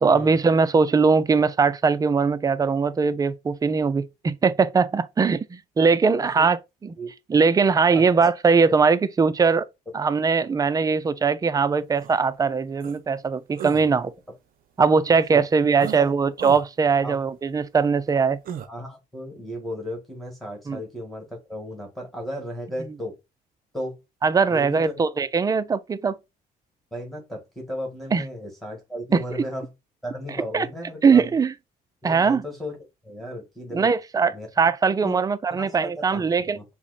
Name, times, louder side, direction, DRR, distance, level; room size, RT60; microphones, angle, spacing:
voice 1, 0.0-6.9 7.3-9.6 9.9-14.1 14.8-18.4 20.7-20.8 24.2-26.2 28.1-28.2 29.1-29.2 30.5-30.7 31.0-31.5 32.0-32.4 33.7-36.6, right 5 dB, 20° right, 0.4 m, -21 dB
voice 2, 7.9-8.3 15.3-15.4 15.8-16.1 17.0-17.2 18.7-23.2 23.7-24.0 24.4-25.0 26.9-29.7 30.0-31.3 32.0-32.8 33.0-33.9 34.3-34.5 35.0-35.2 35.5-36.6, equal, ahead, 1.7 m, -35 dB
sound 1, 12.0-12.1 12.8-13.0 13.6-13.9 15.8-16.0 16.4-16.6 18.5-18.7, right 9 dB, 60° right, 0.7 m, -34 dB
5.7 x 2.1 x 4.1 m
cardioid pair, 110°, 17 cm